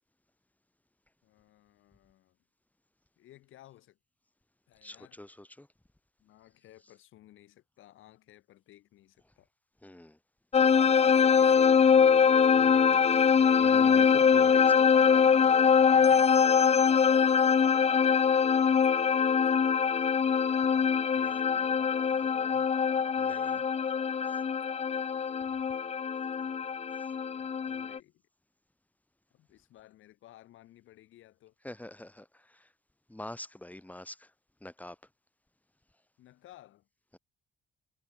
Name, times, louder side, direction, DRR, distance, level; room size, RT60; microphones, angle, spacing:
voice 1, 1.2-2.4 3.2-4.0 4.7-5.2 6.2-9.5 11.9-13.2 15.8-17.5 19.7-20.2 20.7-22.7 26.4-26.6 27.4-28.2 29.3-31.5 36.2-36.9, left 14 dB, 85° left, 7.3 m, -56 dB
voice 2, 4.8-5.7 9.8-10.2 13.6-15.1 17.6-18.0 23.2-23.6 24.3-24.4 31.6-32.7 33.1-34.3 34.6-35.0, left 1 dB, 5° left, 5.6 m, -46 dB
sound 1, 10.5-28.0, left 6 dB, 30° left, 0.6 m, -23 dB
cardioid pair, 90°, 20 cm